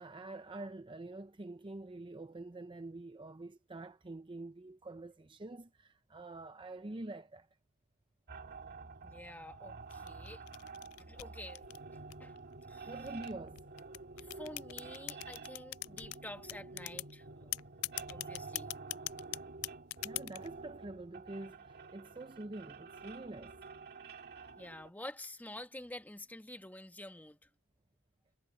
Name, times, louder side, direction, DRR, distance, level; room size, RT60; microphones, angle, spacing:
voice 1, 0.0-7.5 12.9-13.6 18.1-18.3 20.0-23.6, right 2 dB, 25° right, 0.6 m, -46 dB
sound 1, 8.3-24.9, right 4 dB, 50° right, 2.1 m, -49 dB
voice 2, 9.0-10.4 11.0-11.6 12.2-12.3 12.7-13.1 14.2-17.5 18.1-18.7 24.6-27.5, left 1 dB, 10° left, 1.5 m, -49 dB
sound 2, 9.9-12.4 13.1-16.2 16.5-17.1 17.5-20.5, left 20 dB, 75° left, 0.3 m, -41 dB
head